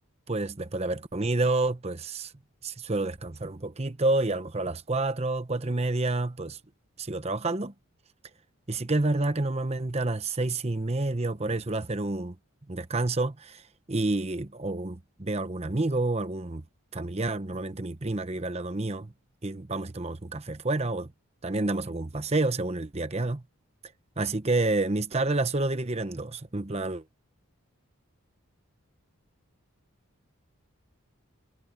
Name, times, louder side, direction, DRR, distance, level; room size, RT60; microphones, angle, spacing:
voice 1, 0.3-2.3 2.6-6.6 7.0-7.7 8.7-12.3 12.7-13.6 13.9-16.6 16.9-19.1 19.4-21.1 21.4-23.4 24.2-27.0, right 2 dB, 30° right, 0.9 m, -29 dB
head